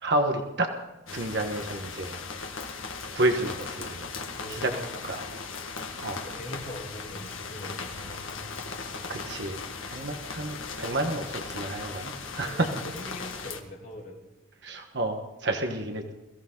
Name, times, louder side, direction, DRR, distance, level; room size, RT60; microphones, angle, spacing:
voice 1, 0.0-0.7 1.1-2.2 3.1-4.0 4.5-4.7 5.0-5.2 6.0-6.2 8.9-9.6 9.9-12.7 14.6-16.1, right 2 dB, 55° right, 4 dB, 1.3 m, -30 dB
sound 1, 1.1-13.6, left 4 dB, 90° left, 1.7 m, -38 dB
voice 2, 4.4-5.1 6.1-8.3 12.4-14.2, left 1 dB, 40° left, 1 dB, 2.6 m, -42 dB
22.5 x 15.5 x 3.9 m, 1.1 s
head